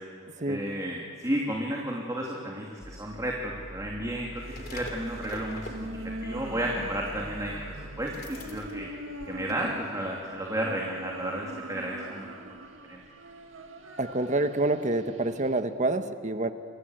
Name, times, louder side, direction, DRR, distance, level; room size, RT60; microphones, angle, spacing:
voice 1, 0.5-5.9 6.2-8.9 9.3-12.3 12.9-13.0, right 1 dB, 15° right, -2 dB, 2.8 m, -32 dB
sound 1, 2.8-9.9 10.2-10.3, left 1 dB, 50° left, 3.0 m, -43 dB
sound 2, 4.4-15.6, right 1 dB, 75° right, 2.2 m, -43 dB
voice 2, 14.0-16.5, right 2 dB, 35° right, 9 dB, 1.3 m, -27 dB
28.5 x 24.5 x 8.0 m, 2.5 s
head